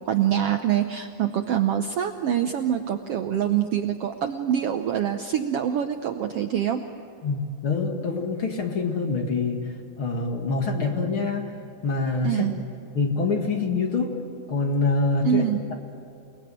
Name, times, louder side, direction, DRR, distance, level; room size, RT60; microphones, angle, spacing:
voice 1, 0.1-6.8 12.2-12.5 15.2-15.7, right 10 dB, 70° right, 6 dB, 1.5 m, -25 dB
voice 2, 7.2-11.5 11.8-12.4 12.9-14.1 14.5-15.4, left 3 dB, 45° left, 3 dB, 2.5 m, -25 dB
28.5 x 19.5 x 9.1 m, 2.6 s
omnidirectional pair, 3.5 m